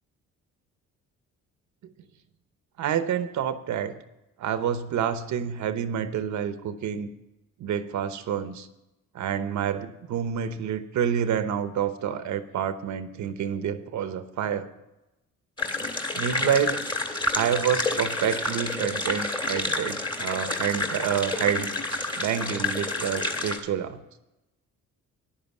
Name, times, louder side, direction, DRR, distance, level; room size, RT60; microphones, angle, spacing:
voice 1, 2.8-4.0 4.4-7.1 7.6-8.7 9.1-14.7 16.2-16.8 17.3-21.7 22.2-24.0, right 8 dB, 70° right, 10 dB, 1.0 m, -28 dB
sound 1, 15.6-23.6, left 2 dB, 15° left, 1.8 m, -29 dB
10.5 x 9.9 x 7.2 m, 0.94 s
cardioid pair, 90°, 30 cm